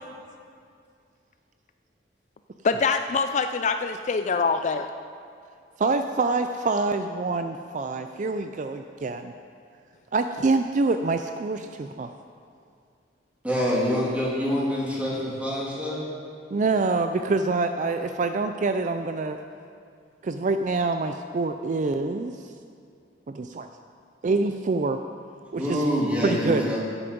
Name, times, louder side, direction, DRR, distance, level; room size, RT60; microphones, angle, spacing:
voice 1, 2.6-4.9, left 4 dB, 40° left, 8 dB, 0.4 m, -24 dB
voice 2, 5.8-9.3 10.1-12.1 16.5-19.4 20.2-22.3 23.3-23.7 24.2-25.0 25.5-25.8 26.2-26.8, right 3 dB, 45° right, 7 dB, 0.4 m, -26 dB
voice 3, 13.4-16.0 25.5-26.9, equal, 10° right, -7 dB, 3.1 m, -26 dB
13.5 x 9.9 x 5.3 m, 2.4 s
head